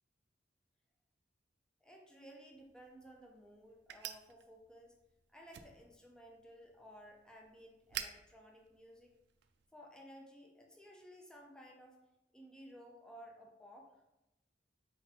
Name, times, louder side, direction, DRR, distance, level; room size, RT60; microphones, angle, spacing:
voice 1, 1.8-4.9 5.3-9.1 9.7-12.0 12.3-14.0, equal, 5° left, 0 dB, 0.5 m, -56 dB
sound 1, 2.5-9.7, right 10 dB, 65° right, 0.4 m, -51 dB
4.4 x 2.9 x 4.0 m, 0.92 s
head